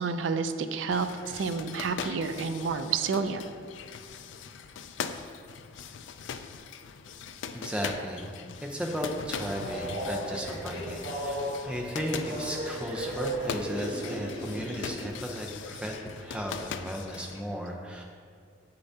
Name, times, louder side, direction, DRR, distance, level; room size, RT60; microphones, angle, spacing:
voice 1, 0.0-3.4, right 5 dB, 80° right, 9 dB, 0.4 m, -30 dB
sound 1, 0.9-17.4, left 6 dB, 75° left, 0.3 m, -41 dB
voice 2, 7.5-18.0, equal, 5° right, -1 dB, 0.6 m, -35 dB
Train, 9.3-15.1, right 1 dB, 50° right, 1.7 m, -35 dB
7.6 x 6.7 x 2.8 m, 2.1 s
head